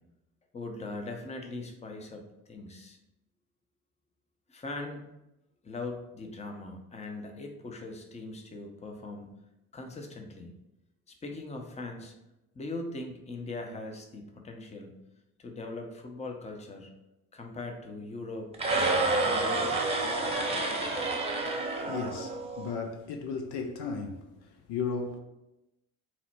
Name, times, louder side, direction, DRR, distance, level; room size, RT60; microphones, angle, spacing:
voice 1, 0.5-3.0 4.5-5.0 5.6-9.3 9.7-10.5 11.1-12.1 12.5-14.9 15.4-16.9 17.3-19.8, left 2 dB, 15° left, 0.6 m, -40 dB
sound 1, 18.5-22.7, right 2 dB, 15° right, 0.9 m, -29 dB
voice 2, 21.5-25.2, left 5 dB, 60° left, 0.6 m, -36 dB
4.1 x 2.1 x 4.1 m
hypercardioid pair, 60°, 45 cm